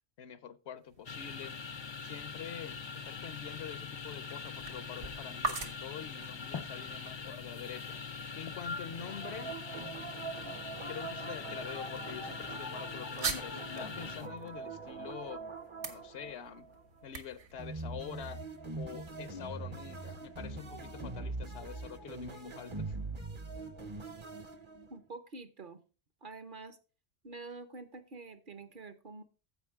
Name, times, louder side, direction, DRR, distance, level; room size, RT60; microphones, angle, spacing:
voice 1, 0.2-1.6 2.0-9.6 10.9-15.4 15.9-16.7 17.0-18.4 18.8-22.9, left 8 dB, 75° left, 1.0 m, -46 dB
sound 1, 0.8-18.6, right 4 dB, 75° right, 1.4 m, -46 dB
sound 2, 1.1-14.3, left 5 dB, 35° left, 0.4 m, -42 dB
sound 3, 8.9-17.1 17.6-25.0, right 3 dB, 30° right, 0.8 m, -43 dB
voice 2, 24.9-25.8 26.2-26.8 27.2-29.2, right 3 dB, 50° right, 1.0 m, -47 dB
15.0 x 5.1 x 3.5 m
omnidirectional pair, 1.1 m